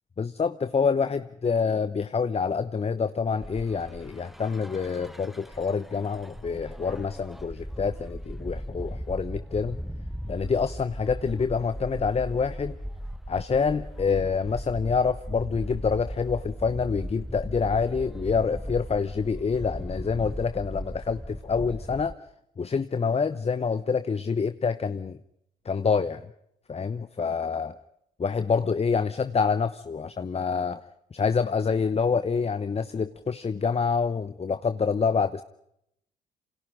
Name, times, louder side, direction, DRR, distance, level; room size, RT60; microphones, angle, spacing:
voice 1, 0.2-9.8 10.3-12.8 13.3-22.1 22.6-25.2 25.6-26.2 26.7-27.8 28.2-30.8 31.1-35.4, left 5 dB, 30° left, 11 dB, 1.0 m, -27 dB
sound 1, 3.4-22.1, equal, ahead, 1.0 m, -38 dB
28.0 x 27.5 x 3.8 m, 0.76 s
hypercardioid pair, 50°, 21 cm